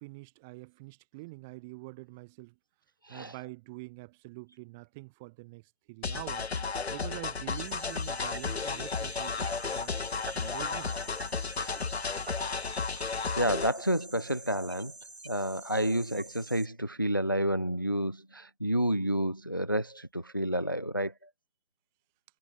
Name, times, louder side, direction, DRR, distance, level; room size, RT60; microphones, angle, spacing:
voice 1, 0.0-2.6 3.1-6.5 6.9-9.9 10.3-11.1, right 25 dB, ahead, 1.4 m, -46 dB
sound 1, 6.0-13.7, left 4 dB, 80° left, 1.0 m, -33 dB
sound 2, 7.6-16.7, right 2 dB, 80° right, 3.8 m, -48 dB
voice 2, 13.0-14.9 15.2-21.1, equal, 20° left, 0.8 m, -30 dB
figure-of-eight pair, 175°, 32 cm